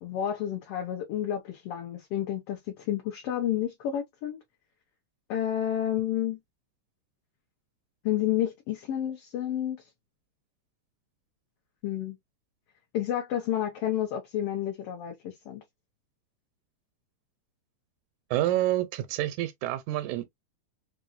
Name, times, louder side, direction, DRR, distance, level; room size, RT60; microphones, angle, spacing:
voice 1, 0.0-4.4 5.3-6.4 8.0-9.8 11.8-12.2 12.9-15.6, left 11 dB, 65° left, 1.7 m, -30 dB
voice 2, 18.3-20.3, right 14 dB, 85° right, 2.0 m, -28 dB
5.0 x 2.6 x 2.5 m
omnidirectional pair, 3.3 m